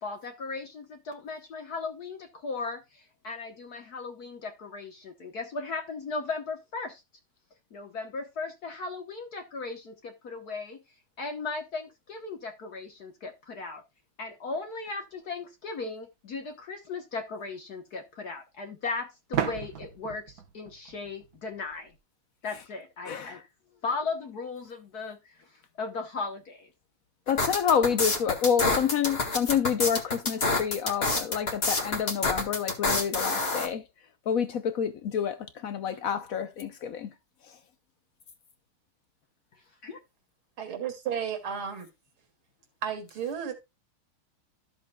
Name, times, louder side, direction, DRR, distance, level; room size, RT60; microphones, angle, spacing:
voice 1, 0.0-7.0 7.7-10.8 11.2-13.8 14.2-21.9 22.4-23.5 23.8-26.7 39.8-40.0, left 4 dB, 55° left, 1.4 m, -37 dB
sound 1, 16.3-16.4 19.3-22.0, right 9 dB, 50° right, 1.4 m, -35 dB
voice 2, 23.1-23.4 27.3-33.8 34.3-37.1, left 7 dB, 80° left, 0.7 m, -28 dB
sound 2, 27.3-33.7, left 3 dB, 30° left, 1.8 m, -27 dB
voice 3, 40.6-41.9 42.8-43.5, right 8 dB, 80° right, 3.1 m, -33 dB
13.0 x 7.4 x 2.3 m
omnidirectional pair, 2.3 m